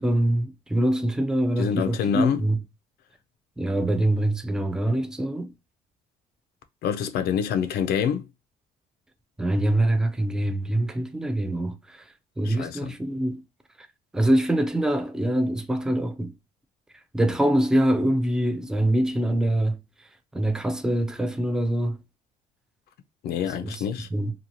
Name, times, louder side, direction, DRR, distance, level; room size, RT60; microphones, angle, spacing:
voice 1, 0.0-2.6 3.6-5.5 9.4-12.0 12.4-13.4 14.1-16.3 17.1-19.8 20.3-22.0 23.6-23.8 24.1-24.3, right 1 dB, 5° right, 0.4 m, -24 dB
voice 2, 1.6-2.4 6.8-8.3 12.4-13.0 23.2-24.1, left 8 dB, 70° left, 0.5 m, -26 dB
2.9 x 2.3 x 2.5 m
cardioid pair, 110°, 17 cm